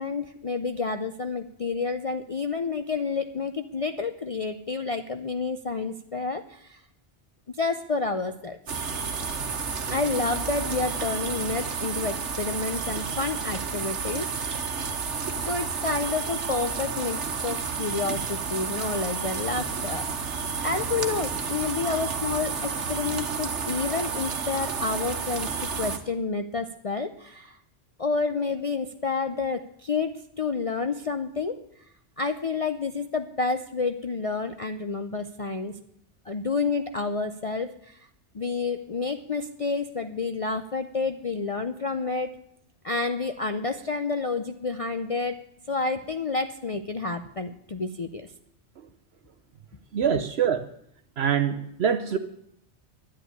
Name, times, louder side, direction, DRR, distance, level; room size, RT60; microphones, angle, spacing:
voice 1, 0.0-6.8 7.5-8.6 9.9-14.7 15.5-20.4 20.6-27.6 28.0-31.6 32.2-35.8 36.3-38.0 38.3-42.3 42.8-45.4 45.7-48.3, left 4 dB, 40° left, 8 dB, 0.6 m, -29 dB
sound 1, 8.7-26.0, right 5 dB, 85° right, 1.5 m, -31 dB
voice 2, 49.9-50.7 51.2-52.2, right 8 dB, 65° right, 8 dB, 1.0 m, -24 dB
10.5 x 10.0 x 9.6 m, 0.72 s
omnidirectional pair, 1.2 m